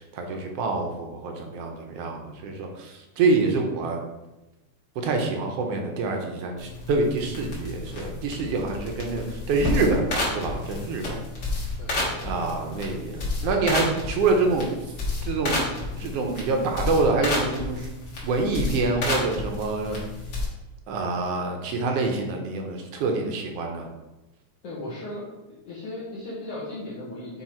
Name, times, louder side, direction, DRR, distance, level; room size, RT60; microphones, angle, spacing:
voice 1, 0.0-4.0 4.9-11.2 12.2-14.6 15.2-15.6 16.0-17.9 18.2-20.0 20.9-23.9, right 3 dB, 70° right, 2 dB, 1.6 m, -26 dB
sound 1, 6.6-20.5, left 2 dB, 45° left, 1.8 m, -31 dB
voice 2, 24.6-25.3 25.7-27.4, left 1 dB, 60° left, -8 dB, 2.1 m, -36 dB
7.4 x 3.3 x 4.4 m, 1.0 s
omnidirectional pair, 3.3 m